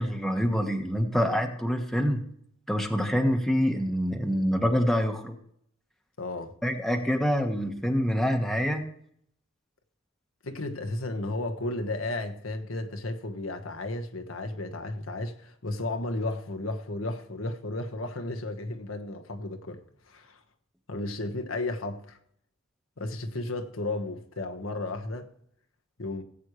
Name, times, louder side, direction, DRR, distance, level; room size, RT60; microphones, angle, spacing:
voice 1, 0.0-2.2 2.7-5.4 6.6-8.8, equal, ahead, 1.3 m, -26 dB
voice 2, 6.2-6.5 10.4-20.4 20.9-22.2 23.0-25.3 26.0-26.2, left 2 dB, 85° left, 1.3 m, -33 dB
17.0 x 8.3 x 3.2 m
head